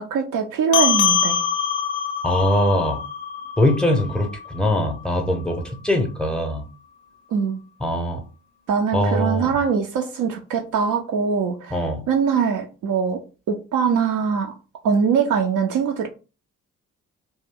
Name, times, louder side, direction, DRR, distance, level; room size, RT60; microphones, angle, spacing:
voice 1, 0.0-1.4 7.3-7.6 8.7-11.8 12.1-14.5 14.8-16.1, right 6 dB, 50° right, 0.5 m, -22 dB
sound 1, 0.7-5.5, left 7 dB, 70° left, 0.5 m, -25 dB
voice 2, 2.2-3.0 3.6-6.7 7.8-8.2 8.9-9.5 11.7-12.0, left 1 dB, ahead, 0.7 m, -22 dB
2.6 x 2.1 x 3.5 m
figure-of-eight pair, 40°, 41 cm